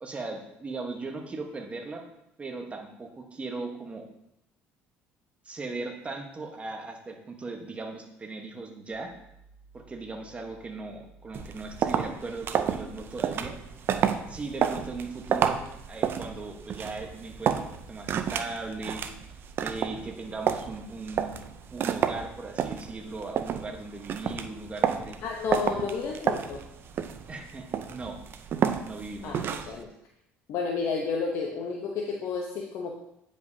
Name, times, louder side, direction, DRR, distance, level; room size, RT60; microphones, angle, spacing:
voice 1, 0.0-2.0 2.4-4.0 5.4-9.1 9.7-13.6 14.3-15.6 15.9-19.0 19.6-21.4 21.7-25.2 27.3-28.2 28.8-29.8, right 3 dB, 25° right, 3 dB, 1.2 m, -38 dB
sound 1, 8.9-20.9, right 5 dB, 75° right, 1.2 m, -55 dB
sound 2, 11.3-29.8, right 8 dB, 50° right, 0.5 m, -31 dB
voice 2, 25.2-26.6 29.2-29.9 30.5-32.9, left 5 dB, 65° left, 1 dB, 0.8 m, -31 dB
9.2 x 5.2 x 2.7 m, 0.84 s
supercardioid pair, 95°, 5 cm